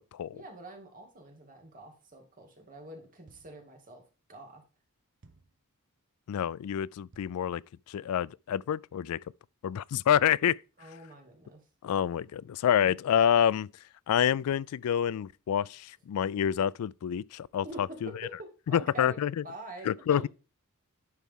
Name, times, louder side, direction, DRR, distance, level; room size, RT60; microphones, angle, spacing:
voice 1, 0.3-4.0 4.3-4.6 10.8-11.6 12.8-12.9 17.6-18.1 18.7-19.2 19.4-20.3, right 1 dB, 40° right, 2.3 m, -46 dB
sound 1, 3.3-3.7 5.2-5.6 7.1-7.5, right 3 dB, 55° right, 0.8 m, -59 dB
voice 2, 6.3-7.6 7.9-9.2 9.6-10.6 11.8-13.7 14.1-18.1 18.7-19.4 19.8-20.3, left 9 dB, 75° left, 0.3 m, -27 dB
11.0 x 4.7 x 3.7 m
head